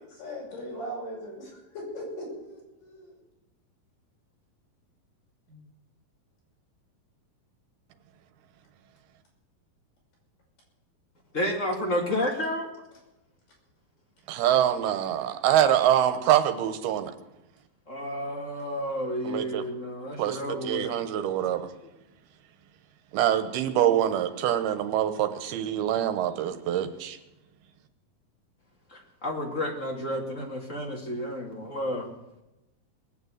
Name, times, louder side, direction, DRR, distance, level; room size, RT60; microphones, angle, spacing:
voice 1, 0.2-3.2 5.5-5.6, equal, 60° left, -3 dB, 7.4 m, -39 dB
voice 2, 11.3-12.7 17.9-20.9 28.9-32.1, equal, 35° left, 0 dB, 1.3 m, -31 dB
voice 3, 14.3-17.1 19.2-19.6 20.2-21.6 23.1-27.2, right 11 dB, 90° right, 9 dB, 3.0 m, -25 dB
19.5 x 8.2 x 8.0 m, 0.94 s
omnidirectional pair, 4.4 m